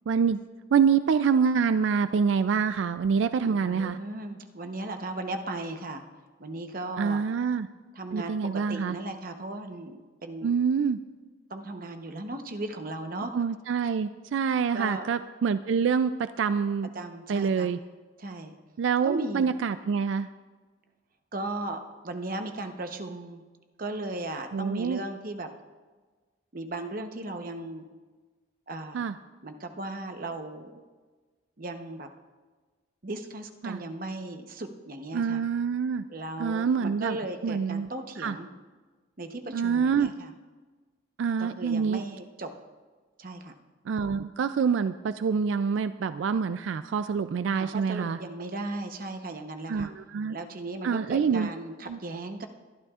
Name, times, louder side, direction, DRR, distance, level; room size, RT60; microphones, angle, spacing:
voice 1, 0.1-0.4 0.7-4.0 7.0-7.7 8.1-9.0 10.4-11.0 13.3-16.9 17.3-17.8 18.8-20.3 24.5-25.0 28.9-29.1 33.6-33.8 35.1-36.0 36.4-37.2 37.4-37.9 38.2-38.4 39.5-40.1 41.2-42.0 43.9-48.2 49.7-50.3 50.8-51.5 51.9-52.0, right 6 dB, 80° right, 12 dB, 0.3 m, -26 dB
voice 2, 3.4-6.0 6.4-7.2 7.9-10.5 11.5-13.3 14.7-15.1 16.9-17.7 18.2-18.6 19.0-19.5 21.3-23.4 23.8-25.5 26.5-27.8 28.7-29.1 29.4-30.8 31.6-32.1 33.0-35.4 36.1-38.5 39.2-40.3 41.4-42.5 43.2-43.5 47.5-49.9 50.3-52.5, right 2 dB, 50° right, 6 dB, 0.9 m, -36 dB
22.0 x 11.5 x 2.4 m, 1.4 s
head